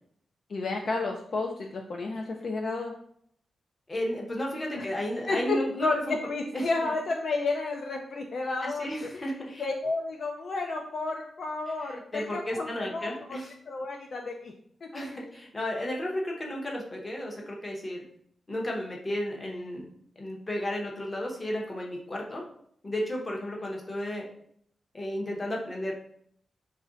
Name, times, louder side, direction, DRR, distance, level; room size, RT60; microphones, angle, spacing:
voice 1, 0.5-2.9 4.7-4.8 5.3-9.2 9.6-13.4 13.7-14.5, left 3 dB, 50° left, 1 dB, 0.3 m, -31 dB
voice 2, 3.9-6.2 6.5-6.9 8.6-9.7 11.8-13.5 14.9-18.0 18.5-19.9 20.2-22.4 22.8-24.3 24.9-25.9, left 1 dB, 20° left, -1 dB, 0.7 m, -33 dB
3.2 x 2.4 x 3.8 m, 0.66 s
wide cardioid pair, 175°, 0 cm